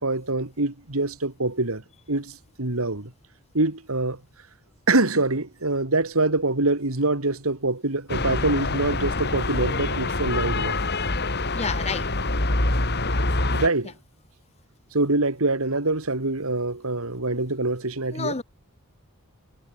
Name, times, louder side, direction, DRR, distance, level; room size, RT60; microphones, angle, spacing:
voice 1, 0.0-1.8 2.1-3.1 3.5-4.2 4.9-10.8 13.5-13.9 14.9-18.4, right 2 dB, 70° right, 2.5 m, -25 dB
sound 1, 8.1-13.7, left 2 dB, 50° left, 3.9 m, -25 dB
voice 2, 11.5-12.1 18.1-18.4, left 4 dB, 30° left, 1.0 m, -29 dB
head